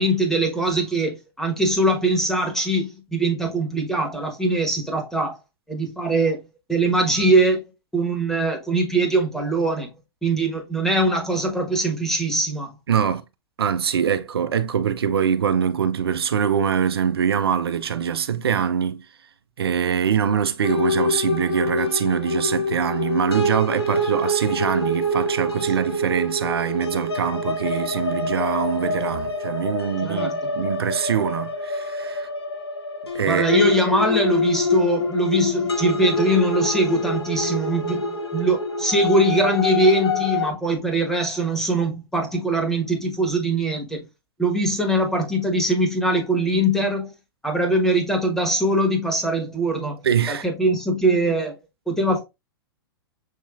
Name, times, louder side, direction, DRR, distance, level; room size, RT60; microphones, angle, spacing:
voice 1, 0.0-5.4 5.7-6.4 6.7-7.6 7.9-9.9 10.2-12.7 30.0-30.5 33.2-44.1 44.4-47.1 47.4-50.0 50.3-51.5 51.9-52.2, right 1 dB, 5° left, 1.5 m, -22 dB
voice 2, 12.9-13.2 13.6-19.0 19.6-32.3 33.1-33.6 50.0-50.4, right 7 dB, 75° right, 0.6 m, -23 dB
sound 1, 20.6-40.5, left 2 dB, 80° left, 0.8 m, -25 dB
6.6 x 3.0 x 2.4 m
figure-of-eight pair, 105°, 13 cm